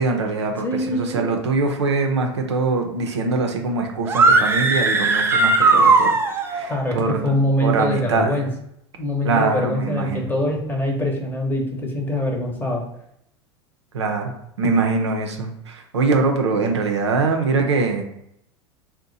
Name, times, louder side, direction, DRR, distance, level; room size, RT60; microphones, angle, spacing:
voice 1, 0.0-6.1 6.4-8.4 9.2-10.2 13.9-14.3 14.6-18.0, right 4 dB, 75° right, 3 dB, 0.5 m, -23 dB
voice 2, 0.6-1.4 6.7-7.0 7.2-8.5 9.0-12.8, left 1 dB, 15° left, 1 dB, 0.8 m, -23 dB
sound 1, 4.1-6.7, right 3 dB, 15° right, 0.4 m, -17 dB
2.7 x 2.1 x 3.8 m, 0.76 s
figure-of-eight pair, 80°, 15 cm